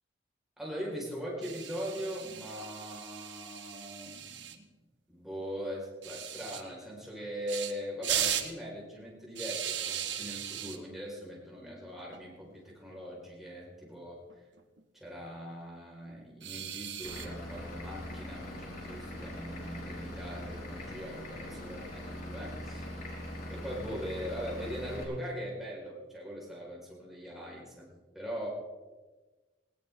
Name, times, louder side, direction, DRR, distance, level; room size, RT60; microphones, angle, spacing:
voice 1, 0.6-4.6 5.1-14.2 14.9-22.9 23.5-27.9 28.1-28.5, equal, ahead, -4 dB, 4.7 m, -41 dB
sound 1, 1.4-4.6 6.0-6.6 7.5-7.7 8.0-8.5 9.4-10.8 12.0-12.2 12.5-12.6 12.9-13.0 14.3-14.8 16.4-17.3, right 10 dB, 70° right, 1.2 m, -37 dB
Vehicle / Engine, 17.0-25.0, left 1 dB, 50° left, 4.6 m, -42 dB
19.0 x 17.5 x 3.7 m, 1.2 s
head